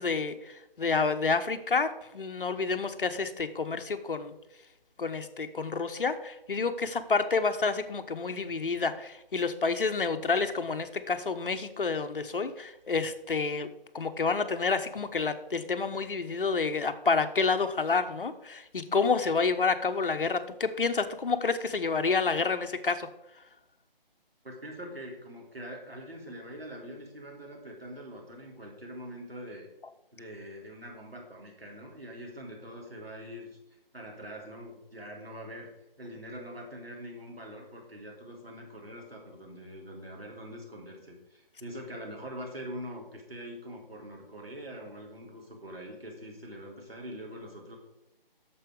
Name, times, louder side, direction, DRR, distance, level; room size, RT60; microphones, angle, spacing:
voice 1, 0.0-4.3 5.0-13.7 13.9-23.1, left 4 dB, 65° left, 9 dB, 1.0 m, -29 dB
voice 2, 24.4-29.7 30.1-33.6 33.9-35.7 36.0-47.8, equal, 85° right, -1 dB, 3.7 m, -43 dB
8.8 x 7.0 x 5.2 m, 0.92 s
figure-of-eight pair, 150°, 29 cm